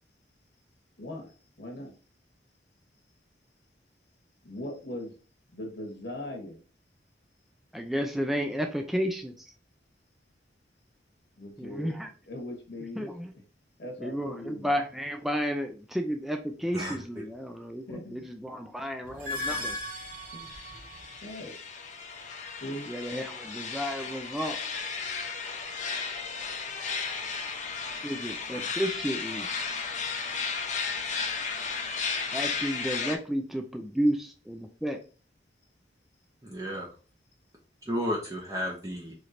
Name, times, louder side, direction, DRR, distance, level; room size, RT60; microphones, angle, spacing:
voice 1, 1.0-1.9 4.4-5.1 5.5-6.6 11.4-11.9 12.3-13.1 13.8-14.7 17.9-18.3 19.1-19.2 20.3-20.6 21.2-21.5 22.6-22.9, left 1 dB, 60° left, 2 dB, 1.0 m, -40 dB
voice 2, 7.7-9.3 11.6-12.1 13.0-13.3 14.0-19.8 22.9-24.6 28.0-29.5 32.3-35.0, equal, ahead, 4 dB, 0.3 m, -32 dB
voice 3, 16.7-17.2 36.4-36.9 37.9-39.1, equal, 20° right, -3 dB, 0.8 m, -33 dB
sound 1, 19.0-21.3, left 2 dB, 50° right, 1.0 m, -36 dB
sound 2, 19.8-33.2, left 5 dB, 40° left, 0.6 m, -34 dB
4.3 x 3.1 x 2.5 m, 0.37 s
head